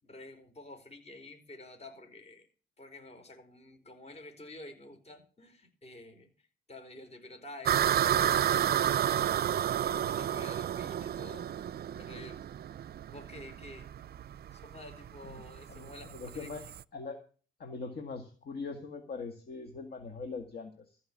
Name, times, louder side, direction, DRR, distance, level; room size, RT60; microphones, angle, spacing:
voice 1, 0.0-2.5 2.8-11.5 11.9-12.4 13.1-14.1 14.5-16.5, left 2 dB, 30° left, 5 dB, 4.8 m, -49 dB
sound 1, 7.7-16.8, right 10 dB, 55° right, 0.5 m, -31 dB
voice 2, 15.3-16.6 16.9-17.2 17.6-21.0, left 4 dB, 50° left, 4 dB, 2.0 m, -42 dB
14.5 x 5.5 x 8.6 m, 0.38 s
cardioid pair, 80°, 20 cm